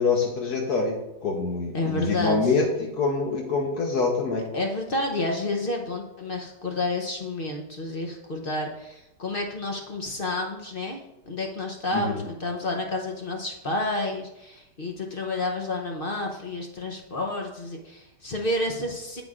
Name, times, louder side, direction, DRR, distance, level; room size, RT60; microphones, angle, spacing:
voice 1, 0.0-4.4 11.9-12.2, left 4 dB, 70° left, 0 dB, 1.4 m, -25 dB
voice 2, 1.7-2.6 4.5-11.0 11.3-19.2, left 2 dB, 45° left, 2 dB, 0.7 m, -30 dB
8.9 x 8.1 x 2.4 m, 0.89 s
omnidirectional pair, 1.8 m